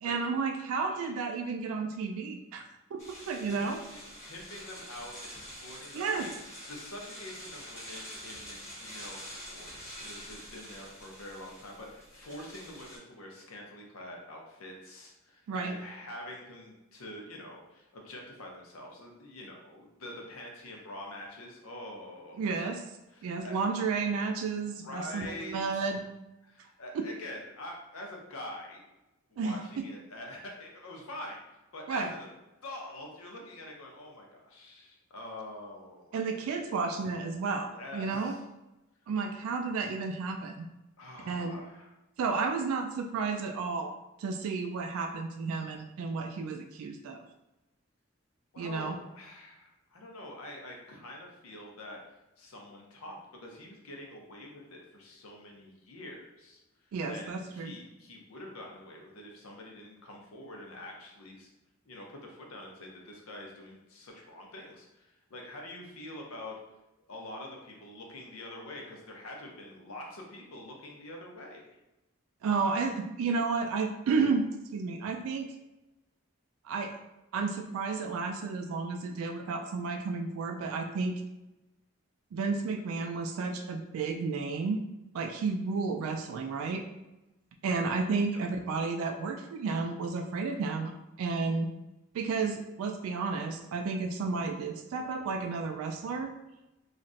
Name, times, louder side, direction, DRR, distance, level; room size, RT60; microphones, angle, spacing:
voice 1, 0.0-2.6 2.9-3.8 5.9-6.3 15.5-15.8 22.4-22.8 23.2-26.0 26.6-26.7 26.9-27.1 29.4-29.6 31.9-32.1 36.1-38.4 39.1-40.7 41.2-41.6 42.2-43.9 44.2-47.2 48.6-49.0 56.9-57.7 72.4-74.5 74.7-75.5 76.6-77.0 77.3-81.2 82.3-84.8 85.1-86.8 87.6-91.7 92.1-96.3, right 4 dB, 80° right, 5 dB, 0.3 m, -32 dB
sound 1, 3.0-13.0, equal, 15° left, 1.0 m, -46 dB
voice 2, 3.5-6.3 6.7-22.5 23.1-23.6 24.6-26.0 26.4-28.8 29.3-32.3 32.6-36.9 37.7-38.4 41.0-41.9 48.5-56.6 57.1-61.5 61.9-66.5 67.1-71.7 88.3-88.4, left 1 dB, 85° left, 0 dB, 0.7 m, -45 dB
3.1 x 2.4 x 2.6 m, 0.97 s
head